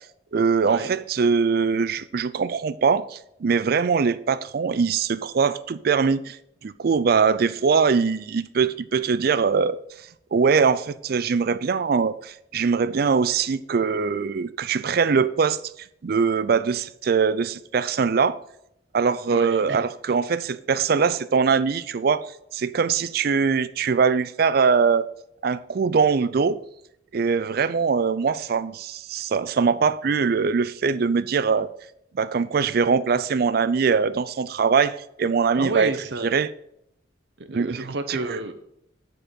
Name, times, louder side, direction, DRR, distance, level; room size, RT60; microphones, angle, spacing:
voice 1, 0.3-6.4 6.6-9.8 10.3-15.6 16.0-18.4 18.9-22.2 22.5-25.0 25.4-26.6 27.1-31.7 32.1-35.9 36.2-36.5 37.5-38.2, right 5 dB, 55° right, 0.4 m, -22 dB
voice 2, 19.3-19.8 35.5-36.3 37.4-38.5, right 3 dB, 70° right, 0.8 m, -30 dB
10.0 x 4.6 x 5.2 m
head